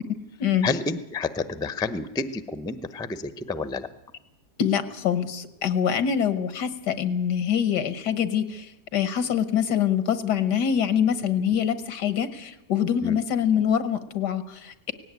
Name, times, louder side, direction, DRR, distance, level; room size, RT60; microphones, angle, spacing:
voice 1, 0.6-3.9 13.0-13.2, left 3 dB, 5° left, 13 dB, 0.4 m, -29 dB
voice 2, 4.6-14.9, left 8 dB, 90° left, 13 dB, 1.8 m, -25 dB
18.0 x 16.5 x 9.5 m, 0.94 s
omnidirectional pair, 1.7 m